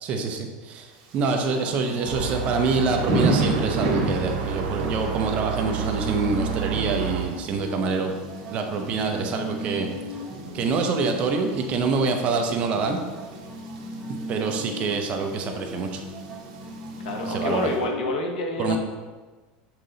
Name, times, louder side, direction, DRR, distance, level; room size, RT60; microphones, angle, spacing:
voice 1, 0.0-8.1 8.5-9.9 10.5-13.0 14.1-16.0 17.3-17.7 18.6-18.8, right 4 dB, 30° right, 3 dB, 0.6 m, -26 dB
Thunder / Rain, 0.9-17.8, right 2 dB, 55° right, 1.4 m, -34 dB
sound 1, 1.3-18.1, equal, 10° right, 1.1 m, -38 dB
sound 2, 2.1-7.3, right 8 dB, 70° right, 0.8 m, -30 dB
voice 2, 17.0-18.8, left 2 dB, 85° left, 3 dB, 1.1 m, -27 dB
7.3 x 3.8 x 3.9 m, 1.3 s
supercardioid pair, 175°, 5 cm